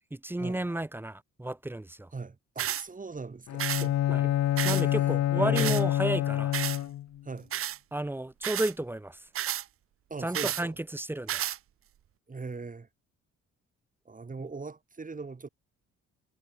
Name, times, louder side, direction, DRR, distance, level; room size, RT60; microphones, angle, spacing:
voice 1, 0.1-2.1 4.1-4.2 4.6-6.5 7.9-9.2 10.2-11.4 14.4-14.5, right 1 dB, 5° right, 0.7 m, -32 dB
voice 2, 2.1-4.4 4.7-5.8 7.2-7.5 10.1-10.7 12.3-12.9 14.0-15.5, right 4 dB, 25° right, 3.4 m, -40 dB
sound 1, 2.6-2.8 3.6-3.9 4.6-4.8 5.5-5.8 6.5-6.8 7.5-7.8 8.4-8.7 9.3-9.6 10.3-10.6 11.3-11.6, right 11 dB, 45° right, 0.6 m, -31 dB
Bowed string instrument, 3.5-7.2, left 12 dB, 60° left, 0.9 m, -27 dB
cardioid pair, 90°, 30 cm